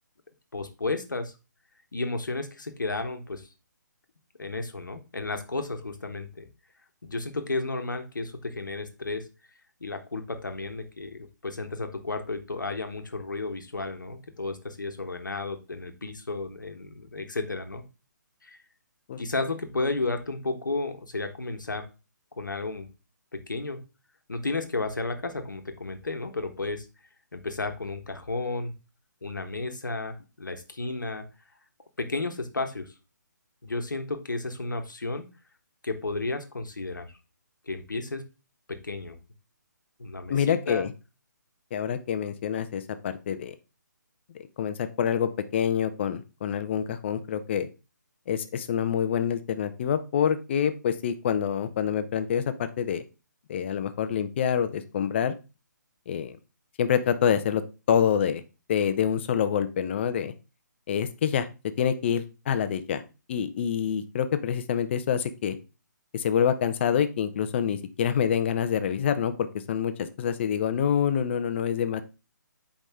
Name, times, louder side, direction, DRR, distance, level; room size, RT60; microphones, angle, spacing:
voice 1, 0.5-1.3 1.9-3.5 4.4-6.5 7.0-9.2 9.8-17.8 18.4-18.6 19.2-21.9 22.3-22.9 23.3-23.8 24.3-26.8 27.3-28.7 29.2-31.2 32.0-32.9 33.6-35.2 35.8-37.1 37.7-38.3 38.7-39.2 40.0-40.9, left 3 dB, 80° left, 6 dB, 1.3 m, -33 dB
voice 2, 40.3-40.9 41.7-43.5 44.3-47.7 48.3-53.0 53.5-55.3 56.1-56.4 56.8-57.6 57.9-58.4 58.7-60.3 60.9-61.5 61.8-63.0 63.3-65.6 66.1-72.0, left 8 dB, 35° left, 11 dB, 0.7 m, -26 dB
7.5 x 5.0 x 3.6 m, 0.30 s
figure-of-eight pair, 145°, 10 cm